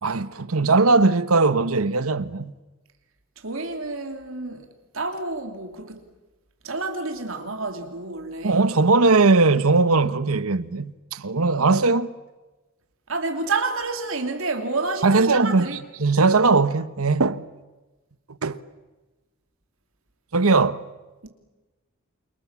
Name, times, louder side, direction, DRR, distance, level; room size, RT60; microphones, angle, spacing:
voice 1, 0.0-2.5 8.4-12.2 15.0-17.4 18.4-18.6 20.3-20.9, right 3 dB, 80° right, 1.1 m, -19 dB
voice 2, 3.4-4.7 4.9-6.0 6.6-8.6 13.1-15.8 21.2-21.3, right 3 dB, 65° right, 2.8 m, -29 dB
28.5 x 28.0 x 7.4 m
head